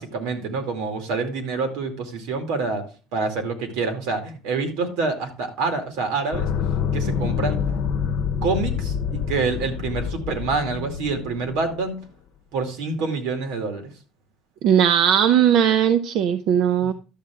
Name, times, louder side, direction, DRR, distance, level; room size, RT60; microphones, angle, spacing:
voice 1, 0.0-2.9 3.1-6.5 6.9-7.6 8.4-12.0 12.5-13.9 16.8-16.9, right 4 dB, 85° right, 6 dB, 2.4 m, -27 dB
sound 1, 6.3-11.8, left 7 dB, 65° left, 0.8 m, -27 dB
voice 2, 14.6-16.9, right 9 dB, 60° right, 11 dB, 0.6 m, -18 dB
11.5 x 7.3 x 3.6 m, 0.35 s
cardioid pair, 140°, 0 cm